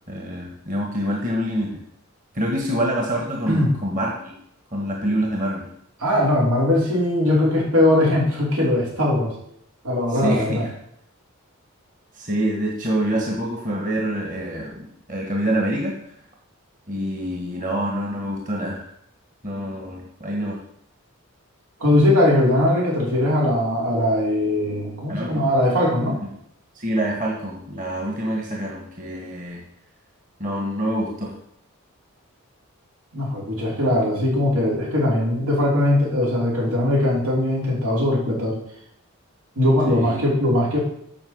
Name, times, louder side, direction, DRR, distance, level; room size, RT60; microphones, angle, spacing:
voice 1, 0.1-1.8 2.3-4.3 4.7-5.7 10.1-10.7 12.1-16.1 16.9-18.9 19.4-20.6 25.1-25.5 26.2-26.3 26.8-29.6 30.4-31.3 39.9-40.2, right 1 dB, 35° right, 0 dB, 1.7 m, -26 dB
voice 2, 6.0-9.3 9.8-10.6 21.8-26.2 33.1-38.6 39.6-40.8, left 1 dB, 85° right, -4 dB, 4.9 m, -20 dB
8.8 x 6.3 x 7.9 m, 0.73 s
head